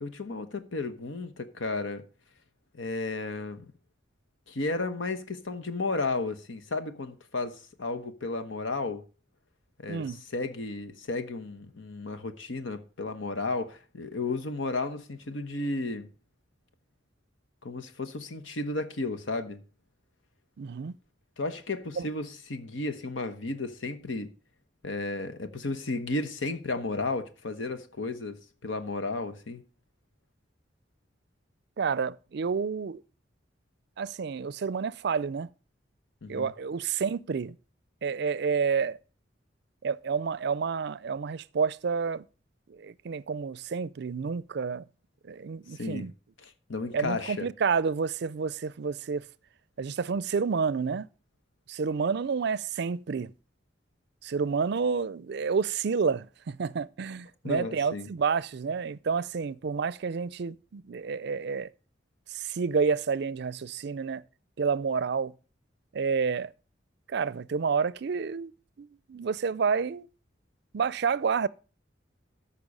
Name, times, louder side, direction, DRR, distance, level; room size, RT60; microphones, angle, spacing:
voice 1, 0.0-2.0 2.7-3.7 4.5-9.0 9.8-16.1 17.6-19.6 21.4-24.3 24.8-28.4 28.6-29.6 36.2-36.5 45.7-46.1 46.4-47.5 57.4-58.1, left 3 dB, 85° left, 1.2 m, -33 dB
voice 2, 9.9-10.2 20.6-20.9 22.0-22.1 31.8-33.0 34.0-35.5 36.3-37.5 38.0-39.0 39.8-42.2 42.7-44.8 45.3-46.1 46.9-49.2 49.8-51.1 51.7-53.3 54.2-61.7 62.3-64.2 64.6-65.3 65.9-66.5 67.1-68.5 68.8-70.1 70.7-71.5, right 5 dB, 60° right, 0.4 m, -29 dB
13.5 x 5.8 x 5.4 m
head